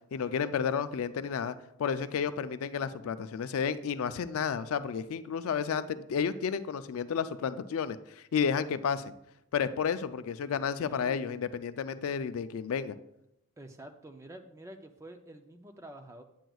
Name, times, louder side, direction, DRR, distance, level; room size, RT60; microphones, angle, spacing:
voice 1, 0.1-9.1 9.5-13.0, left 7 dB, 70° left, 12 dB, 0.3 m, -32 dB
voice 2, 10.8-11.4 13.6-16.2, right 1 dB, 15° right, 6 dB, 0.4 m, -48 dB
9.0 x 7.6 x 2.3 m, 0.83 s
head